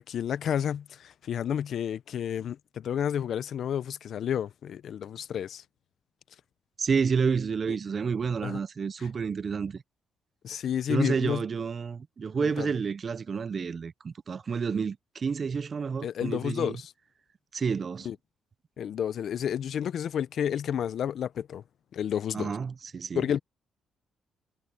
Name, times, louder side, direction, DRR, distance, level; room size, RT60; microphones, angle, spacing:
voice 1, 0.0-5.6 8.4-8.6 9.0-9.1 10.4-11.4 12.4-12.7 16.0-16.9 18.0-18.2 18.8-21.6 21.9-22.6 23.1-23.4, left 9 dB, 65° left, 0.6 m, -31 dB
voice 2, 6.8-9.8 10.9-16.8 17.5-18.1 22.3-23.2, right 5 dB, 40° right, 0.5 m, -30 dB
cardioid pair, 90°, 0 cm